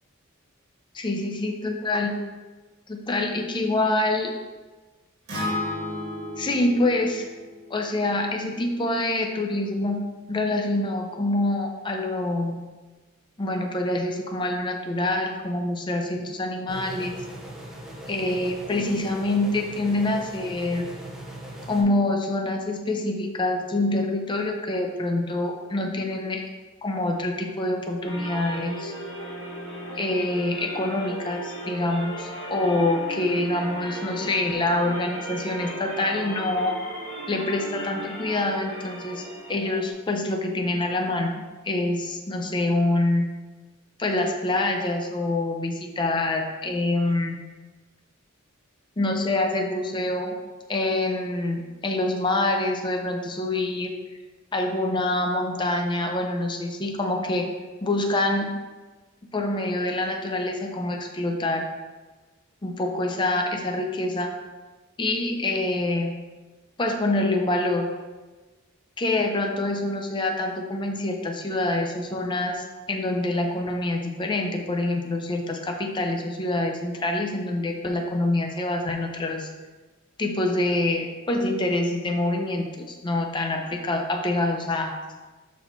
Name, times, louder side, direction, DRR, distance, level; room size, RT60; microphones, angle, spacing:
voice 1, 1.0-2.1 2.9-4.4 6.4-7.2 7.7-10.0 10.3-12.6 13.4-17.2 18.1-20.9 21.7-26.4 26.8-28.9 30.0-36.7 37.3-39.2 39.5-43.3 44.0-47.4 49.0-50.3 50.7-53.9 54.5-57.5 57.8-58.5 59.3-61.6 62.6-64.3 65.0-66.1 66.8-67.9 69.0-79.5 80.2-84.9, left 2 dB, 25° left, 2 dB, 0.5 m, -26 dB
Acoustic guitar, 5.3-9.5, left 1 dB, 55° right, 1.7 m, -34 dB
sound 1, 16.7-21.8, right 1 dB, 5° right, 0.8 m, -40 dB
sound 2, 28.0-39.9, right 1 dB, 60° left, 2.0 m, -36 dB
5.6 x 4.2 x 4.4 m, 1.3 s
head